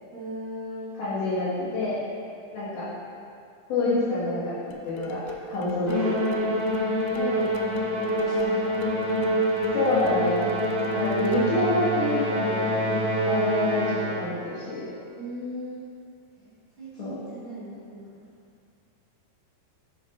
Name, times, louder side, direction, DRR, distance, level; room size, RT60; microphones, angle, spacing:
voice 1, 0.1-0.9 6.5-8.8 15.2-15.9 16.4-18.2, equal, 75° right, -11 dB, 1.2 m, -38 dB
voice 2, 1.0-2.0 2.5-2.9 3.7-4.6 4.8-5.2 5.5-6.3 9.7-10.5 10.9-12.7 13.2-14.8 17.0-17.1, left 2 dB, 70° left, -9 dB, 3.5 m, -27 dB
sound 1, 4.7-11.7, left 2 dB, 85° left, 2.6 m, -38 dB
Musical instrument, 5.9-14.3, equal, 60° right, 1.3 m, -26 dB
8.1 x 7.8 x 2.6 m, 2.4 s
omnidirectional pair, 4.7 m